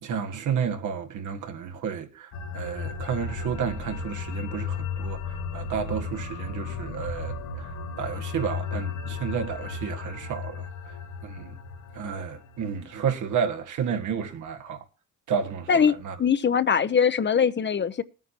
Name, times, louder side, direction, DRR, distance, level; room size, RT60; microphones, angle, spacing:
voice 1, 0.0-11.0 11.2-11.6 11.9-14.8 15.3-16.1, right 7 dB, 75° right, 1.8 m, -31 dB
sound 1, 2.3-13.1, left 5 dB, 75° left, 1.2 m, -35 dB
voice 2, 15.7-18.0, left 7 dB, 35° left, 0.8 m, -22 dB
20.0 x 9.2 x 2.9 m
cardioid pair, 90°, 30 cm